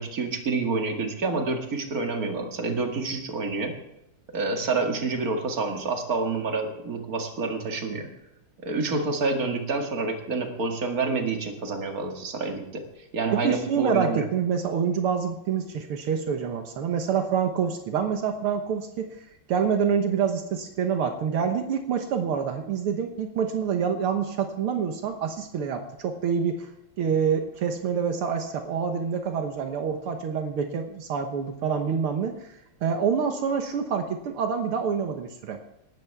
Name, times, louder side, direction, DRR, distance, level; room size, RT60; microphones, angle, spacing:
voice 1, 0.0-3.7 4.3-8.1 8.6-12.8 13.1-14.3, right 3 dB, 40° right, 3 dB, 2.4 m, -28 dB
voice 2, 13.3-19.1 19.5-26.7 27.0-32.5 32.8-35.7, right 7 dB, 80° right, 5 dB, 2.1 m, -27 dB
18.0 x 13.5 x 3.6 m, 0.87 s
omnidirectional pair, 2.4 m